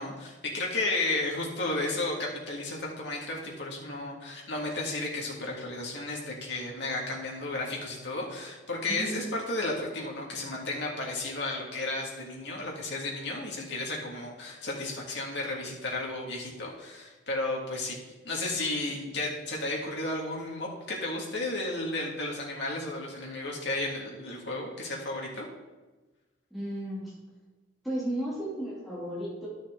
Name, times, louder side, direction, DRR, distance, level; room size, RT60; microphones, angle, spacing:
voice 1, 0.0-18.0 18.2-25.5, left 2 dB, 60° left, -2 dB, 1.9 m, -33 dB
voice 2, 8.9-9.2 26.5-27.1 27.8-29.5, right 1 dB, ahead, -9 dB, 2.5 m, -34 dB
11.5 x 6.3 x 3.7 m, 1.2 s
head